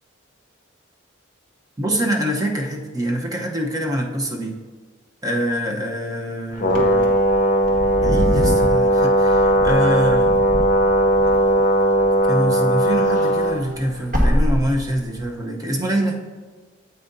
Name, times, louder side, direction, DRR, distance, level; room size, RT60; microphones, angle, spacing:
voice 1, 1.8-4.6 5.2-7.1 8.0-10.3 12.3-16.2, equal, 20° right, 1 dB, 0.8 m, -24 dB
Brass instrument, 6.6-13.6, right 1 dB, 40° left, 0.7 m, -18 dB
Wind / Car, 6.7-12.5 12.8-15.2, equal, 40° right, 1.3 m, -25 dB
9.1 x 8.1 x 2.6 m, 1.4 s
head